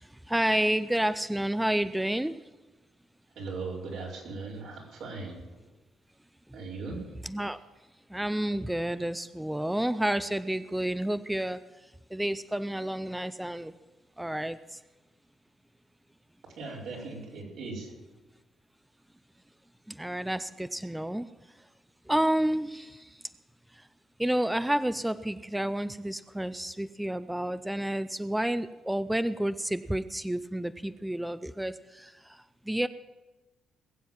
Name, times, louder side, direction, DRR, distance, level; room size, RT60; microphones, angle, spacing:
voice 1, 0.0-2.4 7.2-7.6 8.1-13.7 14.2-14.8 19.9-21.3 22.1-23.2 23.7-23.9 24.2-32.9, right 1 dB, 5° right, 13 dB, 0.5 m, -30 dB
voice 2, 3.3-5.4 6.5-7.2 16.6-17.9, right 3 dB, 80° right, -3 dB, 4.7 m, -38 dB
20.5 x 7.6 x 7.3 m, 1.1 s
cardioid pair, 90°, 0 cm